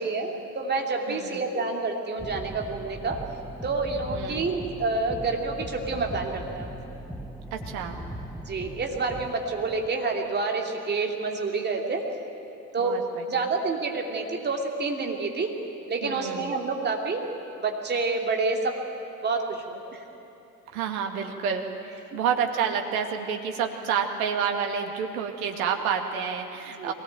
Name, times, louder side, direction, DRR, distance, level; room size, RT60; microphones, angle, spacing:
voice 1, 0.0-3.2 3.6-6.8 8.5-12.1 12.7-13.0 13.3-15.6 15.9-17.3 17.6-18.8 19.2-20.0 22.1-22.2 26.8-26.9, right 3 dB, 20° right, 2 dB, 2.9 m, -28 dB
voice 2, 1.1-1.4 4.1-4.5 7.5-8.0 12.8-13.5 16.0-16.5 20.7-26.9, right 7 dB, 60° right, 4 dB, 2.4 m, -29 dB
sound 1, 2.2-9.9, right 1 dB, ahead, 0.7 m, -39 dB
22.5 x 18.5 x 9.0 m, 2.8 s
figure-of-eight pair, 75°, 49 cm